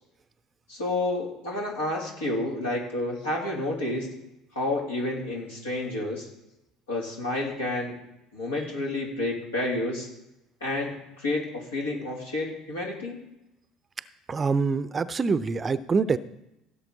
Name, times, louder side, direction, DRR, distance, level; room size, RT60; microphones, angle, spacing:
voice 1, 0.7-4.1 4.5-6.3 6.9-8.0 8.3-10.1 10.6-13.2, left 2 dB, 80° left, -3 dB, 3.0 m, -30 dB
voice 2, 14.3-16.2, right 4 dB, 30° right, 15 dB, 0.6 m, -25 dB
16.0 x 7.1 x 4.0 m, 0.91 s
figure-of-eight pair, 60°, 0 cm